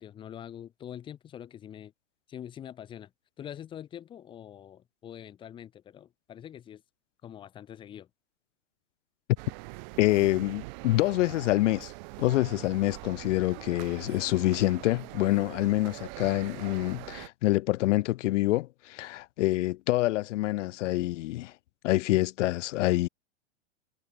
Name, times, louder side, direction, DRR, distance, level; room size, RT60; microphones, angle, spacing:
voice 1, 0.0-1.9 2.3-3.1 3.4-6.8 7.2-8.1, left 10 dB, 15° left, 1.1 m, -44 dB
sound 1, 9.4-17.3, right 29 dB, 40° right, 2.6 m, -43 dB
voice 2, 10.0-11.9 12.2-21.5 21.8-23.1, left 17 dB, 85° left, 0.5 m, -26 dB
supercardioid pair, 165°, 36 cm